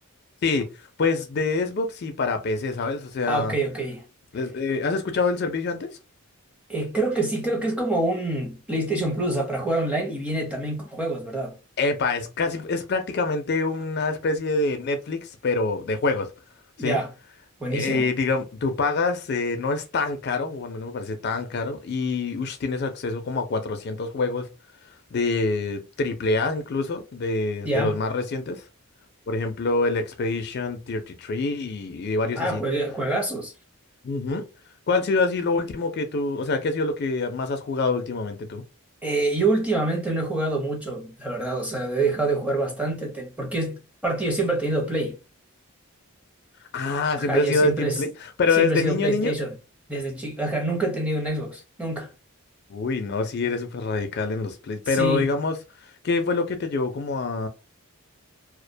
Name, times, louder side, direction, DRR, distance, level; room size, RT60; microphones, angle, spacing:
voice 1, 1.0-3.5 4.3-5.9 11.8-16.3 16.8-17.0 17.7-24.5 25.1-28.6 29.3-32.6 34.0-34.5 34.9-38.6 46.7-48.1 48.4-49.3 52.7-55.5 56.0-57.5, left 3 dB, 50° left, 0.4 m, -25 dB
voice 2, 3.3-4.0 6.7-11.5 16.8-17.1 17.6-18.1 27.6-27.9 32.3-33.5 39.0-45.2 47.2-48.0 48.5-49.5 49.9-52.1 54.9-55.3, right 2 dB, 5° right, 0.6 m, -26 dB
2.4 x 2.1 x 2.6 m
head